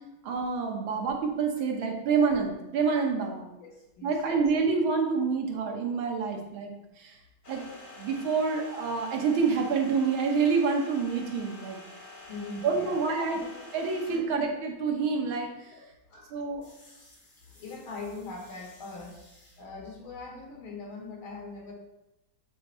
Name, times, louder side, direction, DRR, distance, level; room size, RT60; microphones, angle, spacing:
voice 1, 0.2-3.5 4.0-7.2 7.5-7.6 8.0-11.8 12.4-13.4 13.7-15.7 16.3-16.6, right 5 dB, 75° right, 2 dB, 1.7 m, -27 dB
voice 2, 3.6-4.2 12.3-13.0 13.3-13.5 14.1-14.3 15.7-16.3 17.5-19.2 19.6-21.7, left 3 dB, 80° left, -1 dB, 2.3 m, -42 dB
sound 1, 7.4-14.5 16.6-19.6, left 2 dB, 35° left, 0.9 m, -49 dB
8.1 x 3.5 x 4.2 m, 0.94 s
omnidirectional pair, 2.2 m